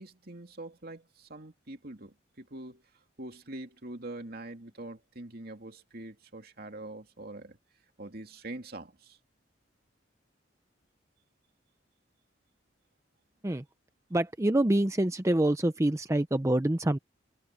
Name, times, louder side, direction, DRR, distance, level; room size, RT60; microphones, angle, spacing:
voice 1, 0.0-2.8 3.2-7.6 8.0-9.2, right 2 dB, 55° right, 2.8 m, -44 dB
voice 2, 14.1-17.0, right 1 dB, 15° right, 0.6 m, -26 dB
head